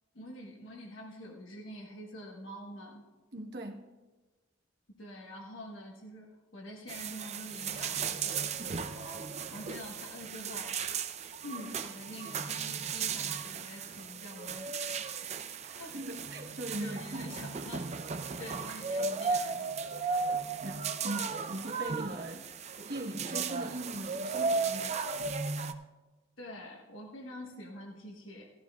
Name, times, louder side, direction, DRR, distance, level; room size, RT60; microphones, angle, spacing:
voice 1, 0.1-3.0 4.9-10.8 11.4-15.1 15.7-15.9 16.8-19.7 21.0-21.4 26.4-28.5, left 1 dB, 80° left, 0 dB, 1.3 m, -46 dB
voice 2, 3.3-3.8 15.6-17.2 20.1-20.3 20.6-22.5 22.9-25.1, right 1 dB, 55° right, 2 dB, 1.2 m, -40 dB
sound 1, 6.9-25.7, right 5 dB, 35° right, 0.5 m, -35 dB
16.5 x 13.5 x 2.4 m, 1.2 s
head